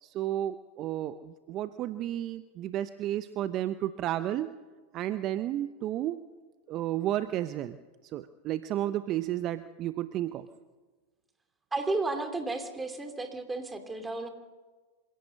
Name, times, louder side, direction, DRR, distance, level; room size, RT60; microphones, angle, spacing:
voice 1, 0.0-4.5 4.9-6.2 6.7-7.8 8.1-10.5, right 12 dB, 45° right, 12 dB, 0.7 m, -32 dB
voice 2, 11.7-14.3, right 3 dB, 15° right, 7 dB, 2.9 m, -33 dB
26.0 x 17.0 x 6.5 m, 1.3 s
hypercardioid pair, 100°, 0 cm